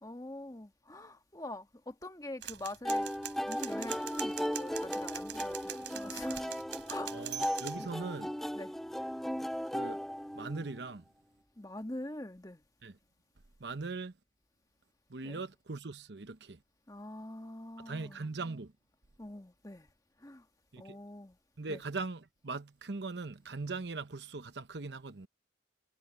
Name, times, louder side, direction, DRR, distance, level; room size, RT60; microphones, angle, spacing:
voice 1, 0.0-3.1 3.5-6.6 6.9-7.4 7.8-7.9 8.5-8.7 11.6-12.6 15.2-15.4 16.9-18.3 19.2-19.9 20.2-20.4 20.8-21.4 21.7-21.8, left 1 dB, 20° left, 1.7 m, -45 dB
sound 1, 2.4-7.9, right 11 dB, 90° right, 3.7 m, -43 dB
sound 2, 2.8-10.8, equal, ahead, 0.4 m, -36 dB
voice 2, 7.1-8.3 9.7-10.0 10.4-11.0 12.8-12.9 13.6-14.1 15.1-16.6 17.8-18.7 20.7-21.0 21.6-25.3, right 3 dB, 65° right, 0.9 m, -40 dB
head